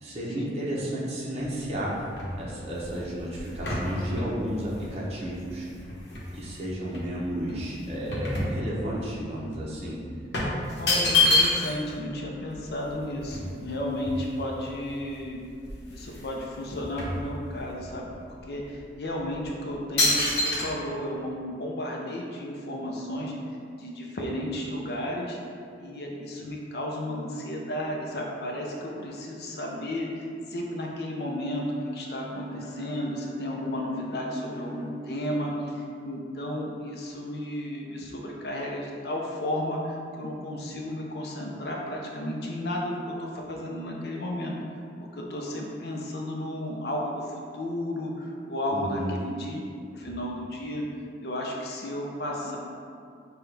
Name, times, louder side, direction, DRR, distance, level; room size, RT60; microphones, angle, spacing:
voice 1, 0.0-2.0 2.4-5.7 6.3-10.0 10.9-11.0 48.7-49.2, equal, 35° right, -6 dB, 0.7 m, -32 dB
sound 1, 1.4-6.5 6.9-9.1 9.4-9.6 10.3-11.9 12.2-12.3 12.5-14.7 15.2-15.3 15.6-16.3 16.6-17.8 18.4-18.6 19.2-19.5 20.0-20.6, left 2 dB, 80° left, 0.9 m, -28 dB
voice 2, 10.7-15.4 15.9-23.3 23.7-25.4 25.8-31.7 31.9-44.5 45.1-49.6 49.9-50.8 51.2-52.6, left 1 dB, 65° left, -1 dB, 0.5 m, -33 dB
Bowed string instrument, 31.1-35.7, left 2 dB, 20° left, 1.0 m, -43 dB
6.0 x 2.3 x 3.3 m, 2.4 s
head